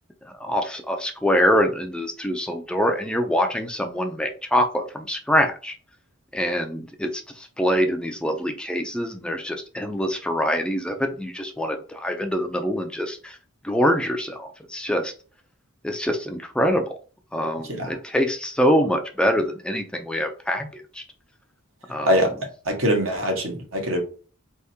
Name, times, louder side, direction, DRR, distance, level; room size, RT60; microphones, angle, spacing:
voice 1, 0.2-5.7 6.3-13.4 13.6-15.1 15.8-16.9 17.3-21.0 21.9-22.3, equal, 5° left, 0.5 m, -24 dB
voice 2, 22.6-24.0, equal, 70° right, 1.4 m, -23 dB
4.3 x 3.5 x 2.8 m
head